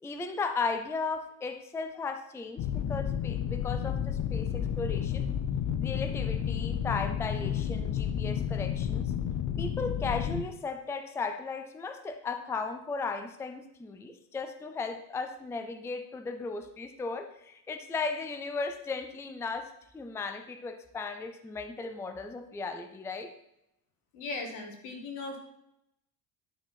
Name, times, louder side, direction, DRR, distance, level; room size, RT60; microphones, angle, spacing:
voice 1, 0.0-5.2 5.8-9.1 9.6-23.3, left 4 dB, 5° left, 7 dB, 0.4 m, -36 dB
sound 1, 2.6-10.4, left 9 dB, 40° left, 0.7 m, -31 dB
voice 2, 24.1-25.4, left 3 dB, 80° left, 2 dB, 2.4 m, -38 dB
11.5 x 4.3 x 5.7 m, 0.81 s
cardioid pair, 135°, 46 cm